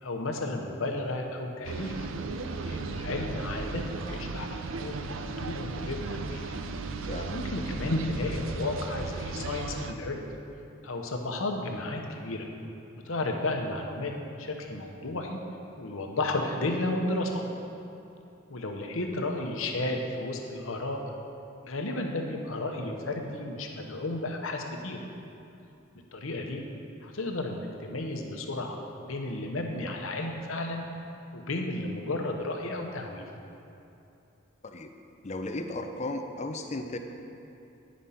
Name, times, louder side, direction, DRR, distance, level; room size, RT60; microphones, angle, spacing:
voice 1, 0.0-2.1 2.6-6.5 7.3-10.2 10.8-12.5 13.0-14.1 14.4-15.4 15.8-17.4 18.5-21.0 21.6-25.0 26.1-26.6 27.0-30.9 31.3-33.2, left 2 dB, 75° left, 2 dB, 0.9 m, -33 dB
sound 1, 1.6-9.9, right 3 dB, 70° right, 0.5 m, -36 dB
voice 2, 7.1-7.4 34.6-34.9 35.2-37.0, left 2 dB, 35° left, 6 dB, 0.5 m, -35 dB
10.0 x 5.2 x 5.6 m, 2.8 s
head